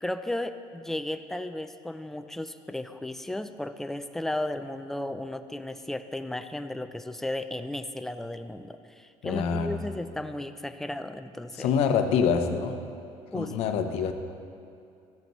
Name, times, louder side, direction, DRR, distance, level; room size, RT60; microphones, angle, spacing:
voice 1, 0.0-11.7 13.3-13.5, left 1 dB, 5° left, 9 dB, 0.4 m, -34 dB
voice 2, 9.2-9.8 11.6-12.8 13.3-14.1, left 6 dB, 65° left, 7 dB, 0.8 m, -25 dB
14.5 x 8.0 x 3.1 m, 2.5 s
cardioid pair, 125°, 11 cm